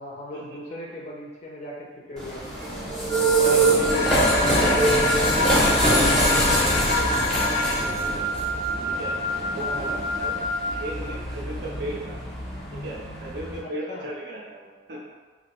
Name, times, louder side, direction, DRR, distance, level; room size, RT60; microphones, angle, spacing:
voice 1, 0.0-2.6 3.3-4.1 4.4-4.9 9.6-10.0 13.9-14.1, left 1 dB, 35° left, -3 dB, 0.4 m, -38 dB
sound 1, 2.2-13.6, right 2 dB, ahead, 0.7 m, -24 dB
voice 2, 2.7-3.1 3.4-5.0 5.4-8.3 8.9-9.1 9.5-9.9 10.2-10.3 10.7-12.2 12.7-15.0, right 2 dB, 55° right, -4 dB, 0.5 m, -36 dB
Wind instrument woodwind instrument, 3.1-10.9, left 1 dB, 90° right, 0.9 m, -29 dB
sound 2, 3.9-8.0, left 4 dB, 90° left, 0.5 m, -27 dB
3.2 x 2.5 x 2.9 m, 1.4 s
head